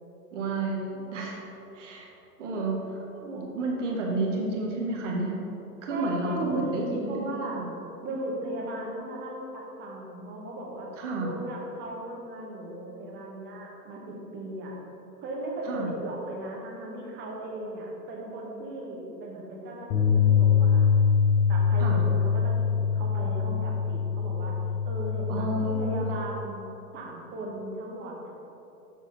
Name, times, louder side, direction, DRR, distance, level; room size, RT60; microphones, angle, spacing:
voice 1, 0.3-1.4 1.7-2.1 2.4-5.4 5.8-7.7 11.0-11.3 15.7-15.9 21.8-22.0 25.3-26.1, right 2 dB, 45° right, -1 dB, 1.5 m, -31 dB
voice 2, 5.9-7.6 8.0-10.9 11.2-14.7 15.2-20.9 21.5-24.5 24.8-26.7 26.9-28.3, right 1 dB, 20° right, -2 dB, 1.2 m, -37 dB
sound 1, 19.9-26.2, left 6 dB, 35° left, 1.2 m, -24 dB
6.6 x 6.3 x 4.0 m, 2.9 s
figure-of-eight pair, 110°, 49 cm